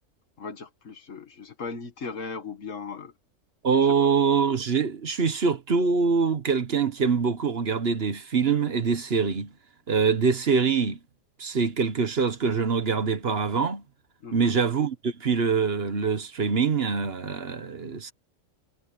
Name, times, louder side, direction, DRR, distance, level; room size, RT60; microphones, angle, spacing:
voice 1, 0.4-3.1 4.0-4.1 14.2-14.6, left 4 dB, 70° left, 2.0 m, -37 dB
voice 2, 3.6-9.5 9.9-11.0 11.4-13.8 14.3-18.1, right 5 dB, 50° right, 1.3 m, -24 dB
omnidirectional pair, 1.4 m